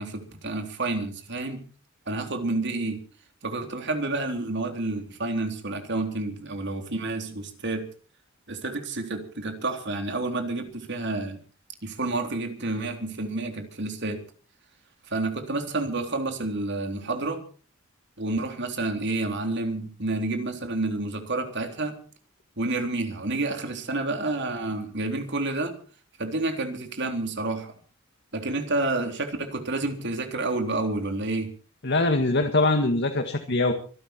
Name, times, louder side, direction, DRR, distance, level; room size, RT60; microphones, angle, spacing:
voice 1, 0.0-1.6 2.1-3.0 3.4-7.9 8.5-11.4 11.8-14.2 15.1-17.4 18.2-22.0 22.6-25.8 26.2-27.7 28.3-31.5, right 2 dB, 60° right, 6 dB, 3.7 m, -29 dB
voice 2, 31.8-33.7, left 2 dB, 55° left, 6 dB, 1.8 m, -23 dB
25.5 x 12.0 x 4.5 m, 0.40 s
head